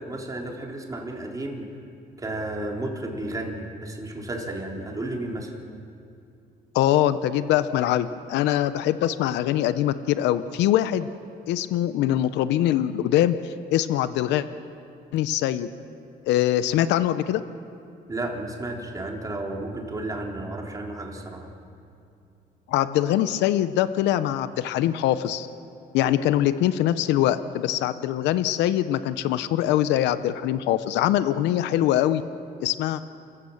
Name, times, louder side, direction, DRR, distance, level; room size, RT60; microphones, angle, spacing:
voice 1, 0.0-1.7 2.2-5.6 18.1-21.5, right 2 dB, 20° right, 0 dB, 3.7 m, -32 dB
voice 2, 6.7-11.1 11.5-14.5 15.1-15.7 16.2-17.4 22.7-25.5 25.9-32.2 32.6-33.0, left 12 dB, 90° left, 13 dB, 0.8 m, -23 dB
29.0 x 16.0 x 7.2 m, 2.5 s
cardioid pair, 115°, 18 cm